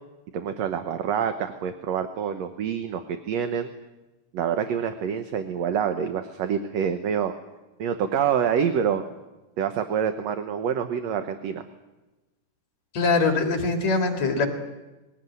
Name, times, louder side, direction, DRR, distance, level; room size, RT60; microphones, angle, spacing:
voice 1, 0.3-3.7 4.3-7.3 7.8-9.0 9.6-11.6, right 8 dB, 65° right, 8 dB, 2.0 m, -26 dB
voice 2, 12.9-14.5, left 3 dB, 60° left, 4 dB, 3.3 m, -22 dB
21.5 x 17.5 x 9.5 m, 1.1 s
omnidirectional pair, 3.6 m